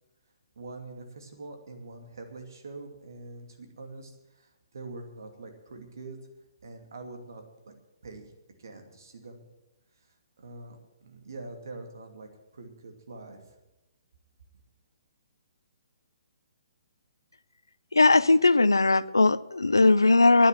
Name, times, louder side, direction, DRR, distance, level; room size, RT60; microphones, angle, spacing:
voice 1, 0.6-6.2 6.6-7.4 8.0-8.3 8.6-9.4 10.0-13.5, right 3 dB, 65° right, 4 dB, 2.6 m, -44 dB
voice 2, 17.9-20.5, left 3 dB, 85° left, 18 dB, 0.5 m, -19 dB
10.5 x 10.0 x 9.1 m, 0.99 s
figure-of-eight pair, 130°, 2 cm